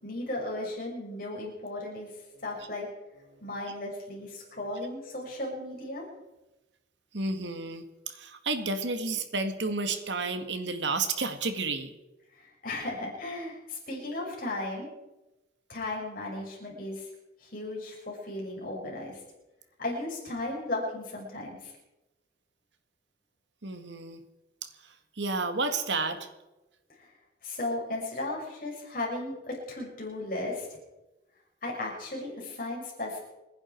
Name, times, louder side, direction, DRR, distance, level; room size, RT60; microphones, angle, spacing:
voice 1, 0.0-2.1 2.4-2.9 3.4-6.0 12.3-14.9 15.7-17.1 17.4-19.2 19.8-21.7 27.0-27.1 27.4-30.8 31.6-33.2, left 2 dB, 50° left, -2 dB, 6.6 m, -35 dB
voice 2, 7.1-11.9 23.6-24.2 24.6-26.3, right 3 dB, 80° right, 8 dB, 1.9 m, -31 dB
28.5 x 11.0 x 4.6 m, 1.0 s
head